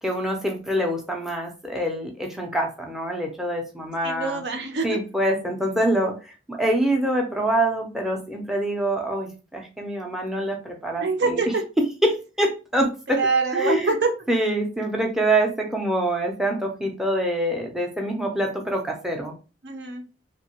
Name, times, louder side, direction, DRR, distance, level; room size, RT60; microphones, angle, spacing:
voice 1, 0.0-4.4 4.8-11.4 12.0-13.2 13.5-13.9 14.3-19.3, right 1 dB, 5° right, 1 dB, 0.5 m, -25 dB
voice 2, 4.0-4.9 11.0-11.6 13.1-14.1 19.6-20.0, right 4 dB, 70° right, 4 dB, 0.6 m, -24 dB
2.9 x 2.2 x 2.8 m, 0.32 s
head